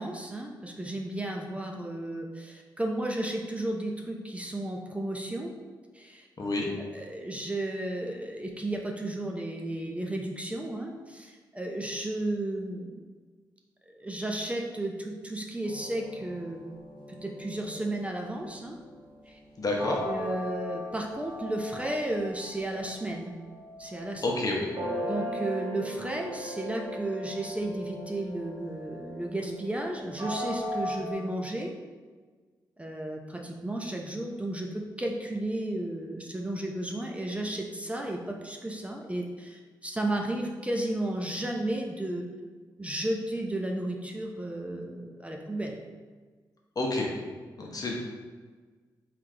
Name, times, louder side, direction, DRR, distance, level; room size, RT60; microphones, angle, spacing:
voice 1, 0.0-5.5 5.9-6.3 6.9-13.0 13.9-16.6 17.1-18.8 19.3-19.4 20.0-23.3 23.8-24.2 25.1-31.7 32.8-42.3 42.8-45.8, right 1 dB, 15° right, 1 dB, 0.6 m, -33 dB
voice 2, 6.4-6.7 19.6-20.0 24.2-24.7 46.8-47.1 47.6-47.9, left 2 dB, 45° left, -1 dB, 1.0 m, -28 dB
sound 1, 15.6-23.0 23.4-24.4 24.7-31.1, equal, 65° right, 1.1 m, -38 dB
3.5 x 3.3 x 3.3 m, 1.4 s
supercardioid pair, 45°, 8 cm